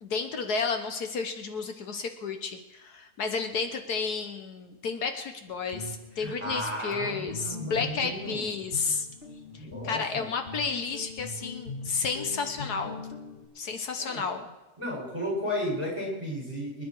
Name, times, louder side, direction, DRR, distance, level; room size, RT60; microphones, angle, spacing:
voice 1, 0.0-9.1 9.5-13.0 13.5-14.5, left 5 dB, 75° left, 6 dB, 1.7 m, -32 dB
Guitar, 5.5-13.5, left 2 dB, 35° left, 2.6 m, -42 dB
voice 2, 6.2-8.5 9.6-10.3 14.0-14.2 14.8-16.8, equal, 20° right, -3 dB, 7.1 m, -34 dB
25.5 x 10.0 x 4.8 m, 1.1 s
omnidirectional pair, 1.7 m